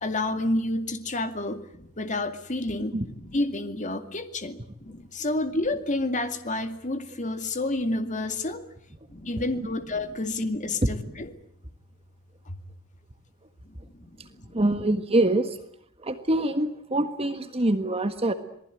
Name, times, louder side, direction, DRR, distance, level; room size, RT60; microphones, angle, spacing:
voice 1, 0.0-8.6 9.1-11.3 12.5-12.6 14.0-14.1, left 2 dB, 35° left, 8 dB, 2.3 m, -29 dB
voice 2, 14.5-15.6 16.0-18.3, right 1 dB, 30° right, 8 dB, 1.6 m, -24 dB
27.0 x 19.5 x 9.2 m, 0.74 s
head